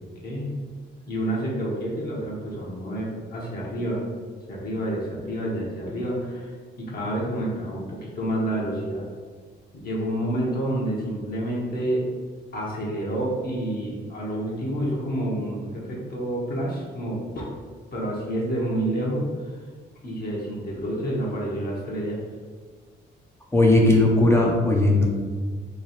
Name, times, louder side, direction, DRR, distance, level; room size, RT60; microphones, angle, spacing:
voice 1, 0.2-0.6 1.1-4.0 4.5-6.5 6.8-9.0 9.7-12.0 12.5-17.5 17.9-19.6 20.0-22.2, right 1 dB, 50° left, -5 dB, 0.9 m, -28 dB
voice 2, 23.5-25.1, left 2 dB, 15° left, -2 dB, 0.6 m, -17 dB
3.1 x 2.3 x 4.1 m, 1.5 s
cardioid pair, 90°, 20 cm